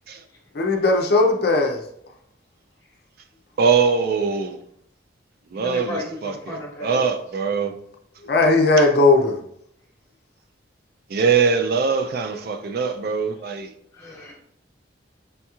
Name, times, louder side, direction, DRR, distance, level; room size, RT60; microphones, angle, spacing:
voice 1, 0.5-1.8 8.3-9.4, left 2 dB, 55° left, 2 dB, 0.5 m, -17 dB
voice 2, 3.6-4.6 5.5-7.7 8.8-8.9 11.1-13.7, right 5 dB, 50° right, 7 dB, 0.3 m, -22 dB
voice 3, 5.5-7.1 13.9-14.3, left 1 dB, 15° left, -3 dB, 1.1 m, -34 dB
5.3 x 2.9 x 2.3 m, 0.71 s
head